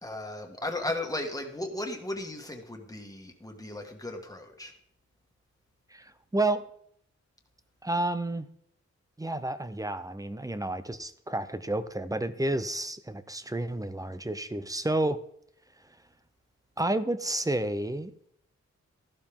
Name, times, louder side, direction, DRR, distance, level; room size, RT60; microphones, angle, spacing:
voice 1, 0.0-4.7, left 1 dB, 10° left, 3 dB, 1.8 m, -36 dB
voice 2, 5.9-6.7 7.8-8.5 9.2-15.2 16.8-18.3, right 1 dB, 10° right, 12 dB, 0.7 m, -30 dB
14.5 x 12.0 x 3.7 m, 0.67 s
wide cardioid pair, 115°, 29 cm